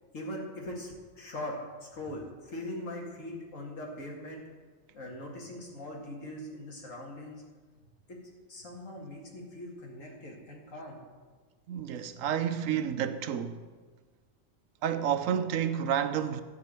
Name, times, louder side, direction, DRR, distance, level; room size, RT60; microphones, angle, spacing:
voice 1, 0.1-1.6 1.8-4.4 4.9-7.4 8.1-8.2 8.5-11.0, left 1 dB, 80° left, 2.5 m, -41 dB
voice 2, 11.7-13.6 14.8-16.4, right 9 dB, 90° right, 1.1 m, -30 dB
13.0 x 5.0 x 7.7 m
omnidirectional pair, 1.3 m